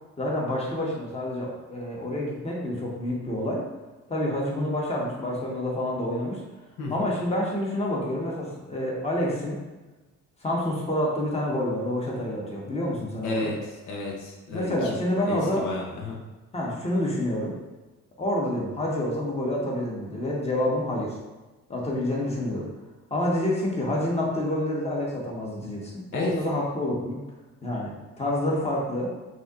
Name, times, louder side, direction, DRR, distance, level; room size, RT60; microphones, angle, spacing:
voice 1, 0.2-3.7 4.1-6.4 6.9-9.6 10.4-13.5 14.5-15.7 16.5-17.6 18.2-21.2 21.7-22.7 23.1-27.2 27.6-29.1, left 1 dB, 20° left, -4 dB, 1.3 m, -28 dB
voice 2, 6.8-7.1 13.2-15.0 15.3-16.2 26.1-26.3, left 2 dB, 80° left, -1 dB, 0.9 m, -32 dB
6.0 x 2.9 x 2.5 m, 1.2 s
cardioid pair, 90°, 30 cm